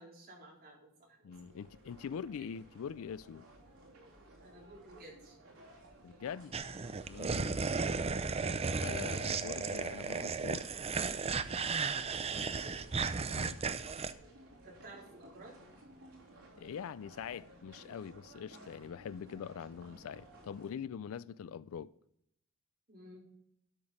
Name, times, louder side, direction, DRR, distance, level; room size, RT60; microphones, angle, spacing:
voice 1, 0.0-1.6 2.4-2.5 4.4-5.4 12.2-12.8 13.1-13.6 14.6-15.6 20.3-20.6 22.9-23.3, right 1 dB, 45° right, 4.0 m, -54 dB
voice 2, 1.2-3.4 6.0-6.5 7.1-7.8 8.8-10.7 13.3-13.6 16.6-21.9, left 7 dB, 70° left, 0.4 m, -43 dB
sound 1, 1.3-20.7, right 1 dB, 80° right, 3.1 m, -57 dB
sound 2, 6.5-14.1, right 4 dB, 30° right, 0.5 m, -35 dB
12.5 x 6.1 x 5.0 m
head